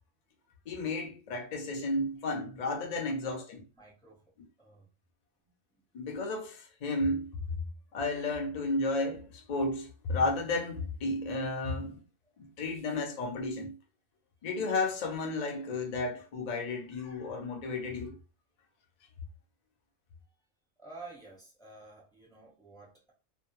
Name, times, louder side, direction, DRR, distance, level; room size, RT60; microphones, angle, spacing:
voice 1, 0.7-3.7 5.9-7.3 7.9-12.0 12.4-13.8 14.4-18.2, left 2 dB, 60° left, 0.4 m, -33 dB
voice 2, 2.9-3.4 3.8-4.2 4.6-4.9 5.9-6.0 20.8-23.1, right 3 dB, 5° left, 0.6 m, -51 dB
2.2 x 2.1 x 2.9 m
omnidirectional pair, 1.4 m